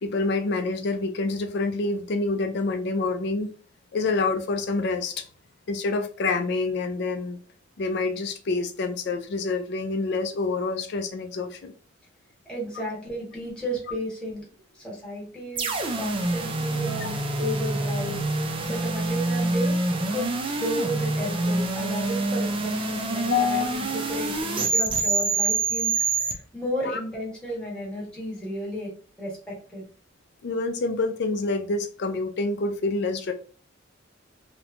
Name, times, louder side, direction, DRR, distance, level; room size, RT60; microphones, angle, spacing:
voice 1, 0.0-3.5 3.9-5.3 5.7-7.4 7.8-11.7 17.0-17.1 23.3-24.0 26.8-27.0 30.4-33.3, left 3 dB, 60° left, 7 dB, 0.4 m, -27 dB
voice 2, 12.5-14.5 14.7-18.2 18.6-19.8 20.1-28.9 29.2-29.8, equal, 5° left, -6 dB, 1.2 m, -33 dB
sound 1, 15.6-26.3, right 3 dB, 25° right, 0.3 m, -26 dB
2.9 x 2.1 x 2.5 m, 0.40 s
head